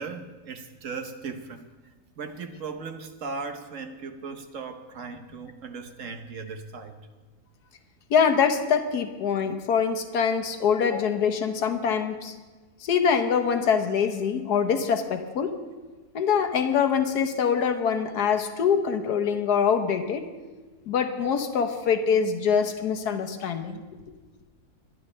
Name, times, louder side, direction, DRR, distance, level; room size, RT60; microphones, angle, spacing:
voice 1, 0.0-1.7 2.2-7.0, right 4 dB, 60° right, 7 dB, 1.2 m, -37 dB
voice 2, 8.1-12.3 12.8-15.5 16.1-20.2 20.9-23.8, left 6 dB, 85° left, 7 dB, 1.5 m, -24 dB
22.5 x 10.5 x 3.3 m, 1.3 s
omnidirectional pair, 1.7 m